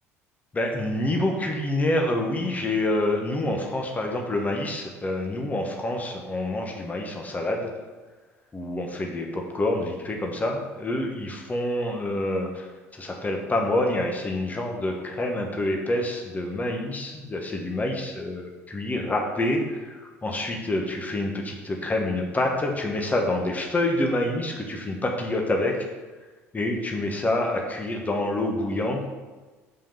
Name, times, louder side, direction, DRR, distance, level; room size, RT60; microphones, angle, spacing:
voice 1, 0.5-7.7 8.5-25.7 26.5-29.0, left 1 dB, 20° left, 2 dB, 1.4 m, -27 dB
5.5 x 5.2 x 5.7 m, 1.3 s
figure-of-eight pair, 60°, 8 cm